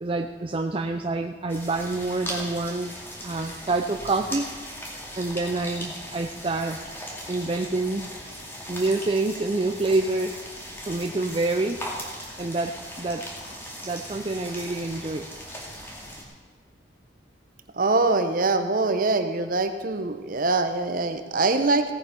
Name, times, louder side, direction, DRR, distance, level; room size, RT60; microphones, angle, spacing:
voice 1, 0.0-2.9 3.2-4.5 5.2-6.8 7.3-8.1 8.7-10.4 10.9-11.8 12.4-13.2 13.8-15.3, right 2 dB, 30° right, 5 dB, 0.5 m, -27 dB
sound 1, 1.5-16.2, equal, 15° left, 2.4 m, -38 dB
voice 2, 17.8-21.8, right 3 dB, 50° right, 8 dB, 0.9 m, -23 dB
17.0 x 8.9 x 5.3 m, 1.5 s
head